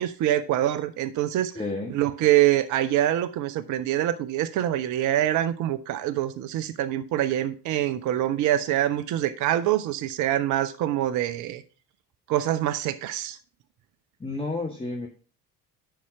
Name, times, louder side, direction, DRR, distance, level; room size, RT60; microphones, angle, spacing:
voice 1, 0.0-1.5 1.9-11.6 12.3-13.4, right 13 dB, 40° right, 0.6 m, -25 dB
voice 2, 1.5-2.0 14.2-15.1, left 2 dB, 10° left, 1.4 m, -31 dB
10.5 x 4.2 x 5.6 m
figure-of-eight pair, 55°, 47 cm